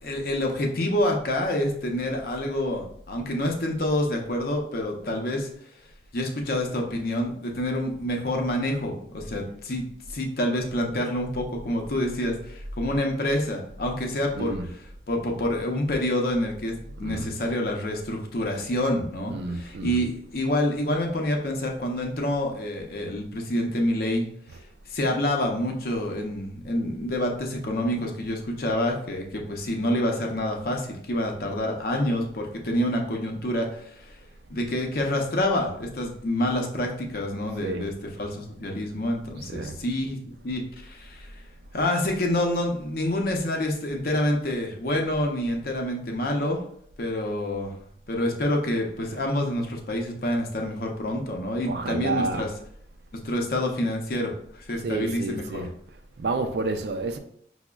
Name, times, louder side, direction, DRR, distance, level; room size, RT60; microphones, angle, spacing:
voice 1, 0.0-5.5 6.1-9.8 10.1-24.3 24.9-34.2 34.5-40.2 40.4-41.3 41.7-46.6 47.0-47.7 48.1-52.5 53.1-55.6, left 1 dB, 55° left, 0.6 m, -27 dB
voice 2, 14.4-14.7 17.0-17.3 19.3-20.0 37.6-37.9 39.5-39.7 51.7-52.5 54.8-55.7 56.2-57.2, right 3 dB, 65° right, 0.4 m, -30 dB
5.8 x 2.0 x 2.2 m
head